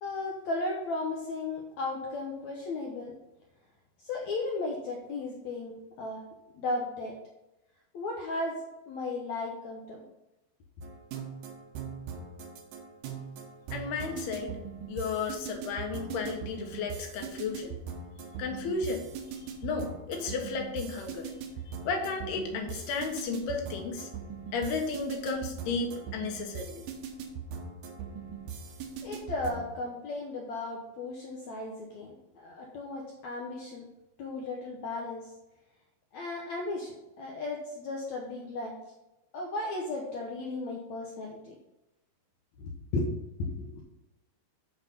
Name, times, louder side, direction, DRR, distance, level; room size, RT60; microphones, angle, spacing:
voice 1, 0.0-3.1 4.0-6.2 6.5-7.1 7.9-8.6 8.9-10.0 29.0-33.9 34.2-35.3 36.1-38.8 39.3-41.6 42.6-43.1 43.4-43.8, left 2 dB, 70° left, 0 dB, 1.7 m, -35 dB
sound 1, 10.8-29.7, right 6 dB, 70° right, 2.4 m, -41 dB
voice 2, 13.7-14.6 14.9-17.7 18.4-19.1 19.6-21.3 21.7-24.1 24.5-26.8, left 4 dB, 90° left, 3 dB, 3.2 m, -33 dB
8.1 x 5.8 x 5.3 m, 0.95 s
omnidirectional pair, 4.4 m